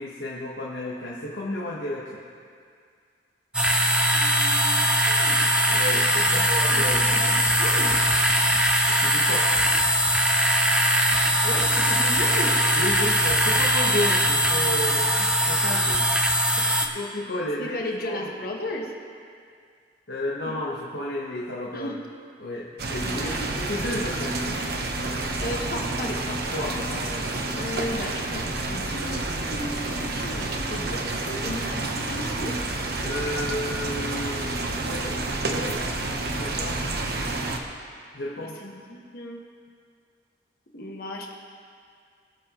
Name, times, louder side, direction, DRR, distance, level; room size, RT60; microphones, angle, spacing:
voice 1, 0.0-2.2 5.7-7.2 8.9-9.5 12.8-18.3 20.1-22.0 22.4-24.6 26.5-27.7 27.9-28.0 33.0-35.8 36.3-36.9 38.1-38.6, left 1 dB, 75° left, -4 dB, 1.1 m, -33 dB
sound 1, 3.5-16.9, equal, 5° right, 0.5 m, -21 dB
voice 2, 4.1-5.4 6.1-7.9 11.4-12.5 17.6-18.9 20.4-20.5 21.7-22.0 23.0-23.5 25.4-26.8 27.5-32.5 38.2-38.3 38.6-39.4 40.7-41.3, left 1 dB, 55° left, 0 dB, 1.4 m, -35 dB
sound 2, 22.8-37.6, right 2 dB, 60° right, 0.9 m, -29 dB
20.5 x 7.0 x 3.0 m, 2.2 s
head